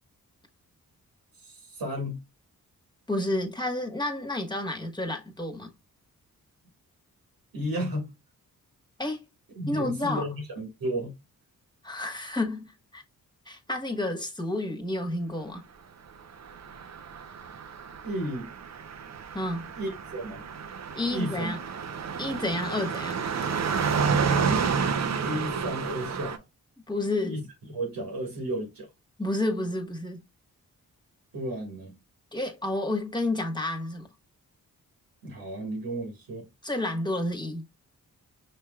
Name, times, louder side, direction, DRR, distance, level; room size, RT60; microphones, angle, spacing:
voice 1, 1.4-2.2 7.5-8.1 9.6-11.1 18.0-18.5 19.7-20.4 21.1-21.5 24.2-24.7 25.2-26.4 27.2-27.4 27.7-28.9 31.3-31.9 35.2-36.5, right 1 dB, 85° right, 1.8 m, -33 dB
voice 2, 3.1-5.7 9.0-9.2 9.7-10.2 11.8-13.0 13.5-15.6 19.3-19.7 20.9-21.6 22.2-23.2 26.9-27.4 29.2-30.2 32.3-34.1 36.6-37.6, left 1 dB, 10° left, 1.3 m, -30 dB
Car passing by, 16.4-26.4, right 6 dB, 50° right, 0.7 m, -30 dB
5.9 x 3.2 x 2.3 m
cardioid pair, 75°, 34 cm